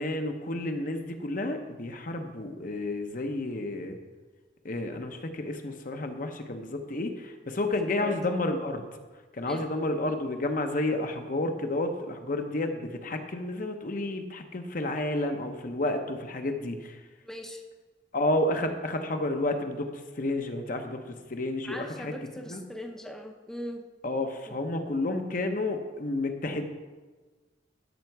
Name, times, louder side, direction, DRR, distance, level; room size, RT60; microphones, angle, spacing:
voice 1, 0.0-4.0 4.6-8.8 9.3-17.0 18.1-19.9 20.2-22.1 22.5-22.6 24.0-26.6, left 2 dB, 45° left, 6 dB, 0.8 m, -31 dB
voice 2, 17.2-17.6 21.6-23.8 24.5-24.6, equal, 5° left, 2 dB, 0.6 m, -39 dB
13.0 x 5.8 x 4.6 m, 1.3 s
head